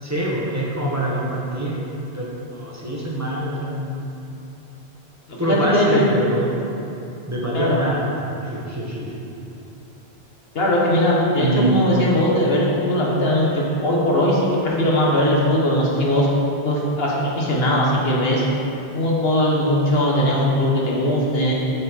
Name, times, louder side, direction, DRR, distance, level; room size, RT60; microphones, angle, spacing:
voice 1, 0.0-1.8 2.1-3.9 5.4-6.5 6.9-7.0 7.3-9.1 11.4-11.8, right 1 dB, 15° right, -5 dB, 1.3 m, -25 dB
voice 2, 5.3-6.1 7.5-7.8 10.5-16.3 16.6-18.5 18.9-21.5, left 1 dB, 70° left, -4 dB, 1.7 m, -19 dB
8.5 x 6.4 x 4.6 m, 2.9 s
omnidirectional pair, 1.1 m